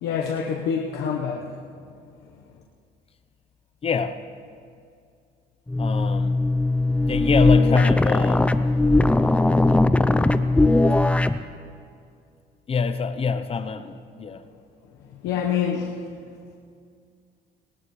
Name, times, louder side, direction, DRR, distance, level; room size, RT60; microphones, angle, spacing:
voice 1, 0.0-1.5 15.2-16.0, left 7 dB, 85° left, -1 dB, 1.2 m, -26 dB
voice 2, 3.8-4.2 5.8-6.4 7.1-8.5 12.7-14.4, left 5 dB, 35° left, 10 dB, 0.8 m, -25 dB
sound 1, 5.7-11.4, left 2 dB, 5° left, 0.5 m, -19 dB
19.5 x 19.0 x 3.2 m, 2.3 s
cardioid pair, 110°, 17 cm